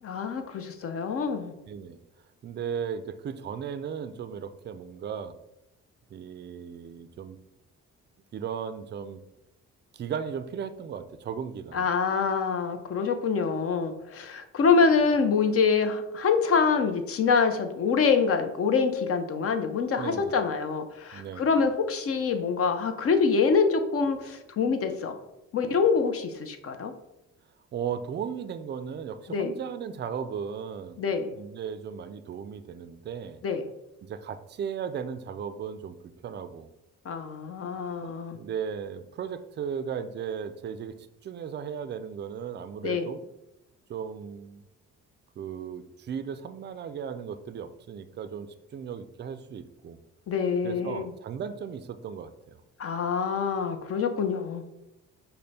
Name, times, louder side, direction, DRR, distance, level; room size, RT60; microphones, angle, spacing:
voice 1, 0.0-1.5 11.7-25.2 25.5-26.9 29.3-29.5 31.0-31.3 33.4-33.7 37.1-38.4 42.8-43.0 50.3-51.1 52.8-54.6, left 5 dB, 50° left, 8 dB, 0.6 m, -25 dB
voice 2, 1.7-2.0 2.4-5.3 6.1-7.4 8.3-9.2 9.9-11.9 20.0-20.4 21.1-21.5 27.7-33.4 34.0-36.7 38.0-41.0 41.2-43.3 43.9-44.6 45.4-50.0 50.6-52.6, right 7 dB, 35° right, 11 dB, 0.4 m, -36 dB
5.3 x 2.2 x 4.1 m, 0.90 s
cardioid pair, 90°, 30 cm